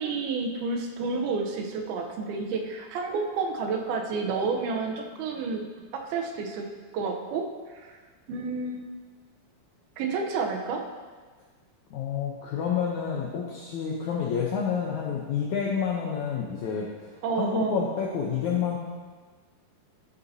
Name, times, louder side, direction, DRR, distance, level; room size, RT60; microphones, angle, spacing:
voice 1, 0.0-5.6 5.9-6.7 6.9-7.5 7.8-7.9 8.3-8.8 10.0-10.8 17.2-17.9, right 4 dB, 80° right, 2 dB, 2.7 m, -30 dB
voice 2, 11.9-17.1 17.4-18.8, left 7 dB, 80° left, -2 dB, 1.7 m, -29 dB
12.5 x 8.2 x 2.7 m, 1.4 s
omnidirectional pair, 4.4 m